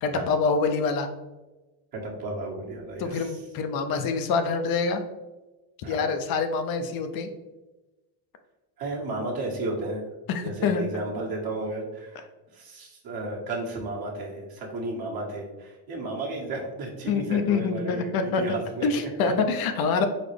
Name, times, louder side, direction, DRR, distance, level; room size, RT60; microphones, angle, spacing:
voice 1, 0.0-1.1 3.0-5.0 5.9-7.3 10.3-10.8 17.1-18.6 18.8-20.1, left 5 dB, 50° left, 7 dB, 0.6 m, -26 dB
voice 2, 1.9-3.4 5.8-6.0 8.8-10.0 10.4-12.2 12.5-19.3, right 2 dB, 50° right, -2 dB, 1.5 m, -33 dB
4.0 x 4.0 x 3.3 m, 1.1 s
supercardioid pair, 95°, 47 cm